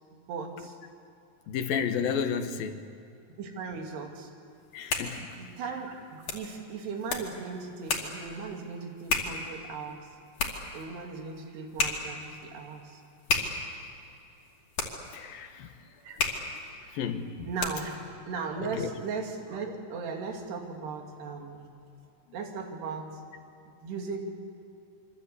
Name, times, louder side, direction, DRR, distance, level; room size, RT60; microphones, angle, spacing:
voice 1, 0.1-0.8 3.4-4.3 5.4-10.1 10.7-13.0 15.6-16.2 16.8-16.9 17.5-18.0 18.3-21.6 22.3-23.2 23.8-24.2, right 4 dB, 90° right, 4.7 m, -37 dB
voice 2, 1.5-2.8 4.7-5.3 15.1-15.7 16.9-17.5 18.8-18.9, left 7 dB, 70° left, 2.8 m, -31 dB
sound 1, 4.6-18.0, left 3 dB, 50° left, 3.9 m, -35 dB
26.5 x 25.0 x 8.3 m
omnidirectional pair, 4.6 m